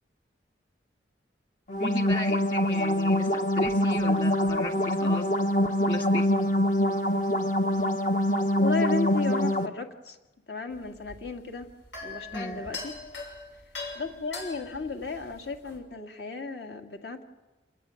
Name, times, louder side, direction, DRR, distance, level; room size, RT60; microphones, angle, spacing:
sound 1, 1.7-9.7, left 1 dB, 45° left, 1.0 m, -25 dB
voice 1, 1.7-5.5 5.8-6.3 12.3-12.6, left 1 dB, 25° left, 4 dB, 2.1 m, -35 dB
voice 2, 8.6-10.2 10.5-11.7 12.0-12.9 14.0-17.2, left 4 dB, 65° left, 3 dB, 2.1 m, -34 dB
sound 2, 10.7-15.8, left 3 dB, 80° left, 6.3 m, -41 dB
27.0 x 20.5 x 7.1 m, 1.1 s
head